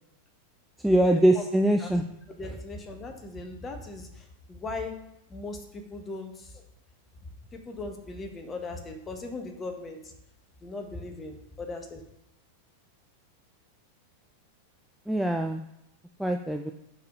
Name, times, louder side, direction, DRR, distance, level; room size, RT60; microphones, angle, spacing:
voice 1, 0.8-2.0 2.4-2.6 15.1-15.6 16.2-16.7, right 1 dB, ahead, 3 dB, 0.4 m, -23 dB
voice 2, 2.4-4.1 4.5-4.9 5.3-6.3 7.7-10.0 10.6-12.0, left 3 dB, 20° left, 3 dB, 1.1 m, -38 dB
4.7 x 4.5 x 5.2 m, 0.83 s
figure-of-eight pair, 90°, 0 cm